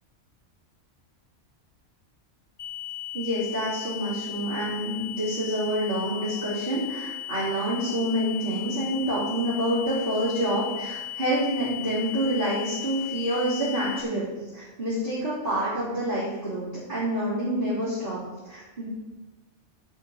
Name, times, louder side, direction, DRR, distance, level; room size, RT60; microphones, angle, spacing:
sound 1, 2.6-14.0, left 12 dB, 75° left, 1.4 m, -37 dB
voice 1, 3.1-14.3 14.5-18.9, right 1 dB, 40° right, -12 dB, 3.6 m, -27 dB
10.5 x 6.7 x 5.6 m, 1.2 s
omnidirectional pair, 1.3 m